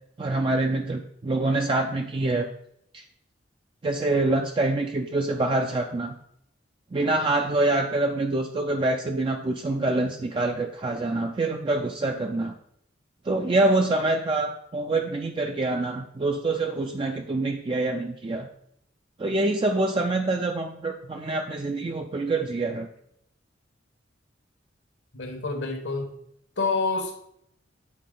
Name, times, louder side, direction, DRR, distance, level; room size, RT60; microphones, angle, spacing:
voice 1, 0.2-2.5 2.9-3.0 3.8-6.1 6.9-12.6 13.3-18.5 19.2-22.9, right 2 dB, 30° right, 4 dB, 0.4 m, -25 dB
voice 2, 25.1-26.2 26.6-27.2, left 4 dB, 75° left, 4 dB, 1.2 m, -28 dB
8.5 x 4.2 x 3.7 m, 0.72 s
head